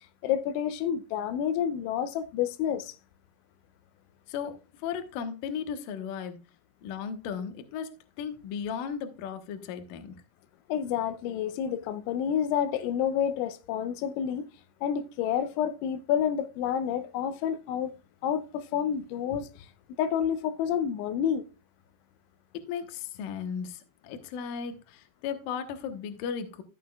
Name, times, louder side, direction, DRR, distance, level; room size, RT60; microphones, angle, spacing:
voice 1, 0.2-3.0 10.7-14.5 14.8-17.9 18.2-19.5 20.0-21.4, left 9 dB, 85° left, 3.1 m, -29 dB
voice 2, 4.3-6.4 6.8-7.9 8.2-10.1 22.7-26.6, left 7 dB, 70° left, 2.3 m, -36 dB
14.0 x 7.6 x 2.4 m
omnidirectional pair, 5.2 m